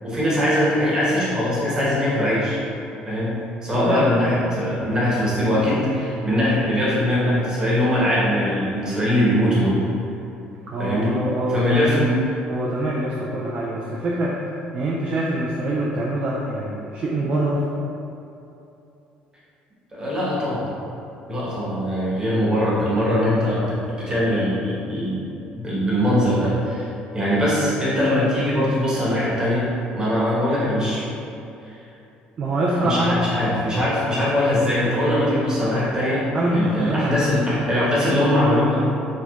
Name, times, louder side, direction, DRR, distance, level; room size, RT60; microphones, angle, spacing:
voice 1, 0.0-2.6 3.0-9.8 10.8-11.2 11.5-12.2 19.9-20.7 21.3-25.2 25.5-26.9 27.1-29.7 29.9-31.0 31.6-31.8 32.8-36.2 36.5-38.8, left 1 dB, 20° right, -8 dB, 1.1 m, -21 dB
voice 2, 3.7-4.1 10.7-11.9 12.5-14.4 14.7-17.6 32.4-33.2 36.3-37.1, right 1 dB, 40° right, -4 dB, 0.3 m, -24 dB
4.4 x 2.1 x 2.4 m, 2.8 s
cardioid pair, 110°, 3 cm